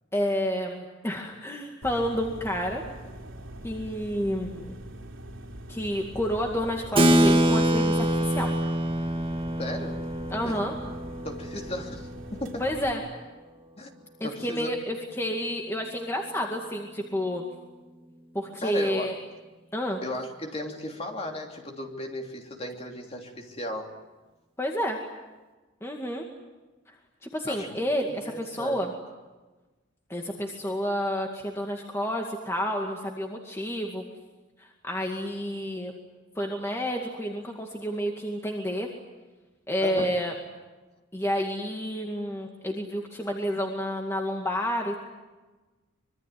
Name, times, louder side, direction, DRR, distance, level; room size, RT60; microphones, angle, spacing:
voice 1, 0.1-2.8 3.6-4.8 5.7-8.6 10.3-10.7 12.6-13.0 14.2-17.4 18.3-19.1 19.7-20.0 24.6-25.0 25.8-26.3 27.2-28.9 30.1-34.0 34.6-35.9 36.4-38.9 39.7-40.3 41.1-45.0, equal, 15° left, 1 dB, 2.2 m, -30 dB
sound 1, 1.8-12.9, right 1 dB, 90° right, 3.7 m, -43 dB
Keyboard (musical), 7.0-13.0, right 1 dB, 25° right, 1.7 m, -25 dB
voice 2, 9.6-10.0 10.4-10.6 11.2-12.6 13.8-13.9 14.2-14.7 18.6-19.1 20.0-23.9 27.5-27.9 28.3-28.8 39.8-40.1, left 1 dB, 30° left, 2 dB, 3.2 m, -35 dB
25.5 x 23.0 x 9.4 m, 1.2 s
head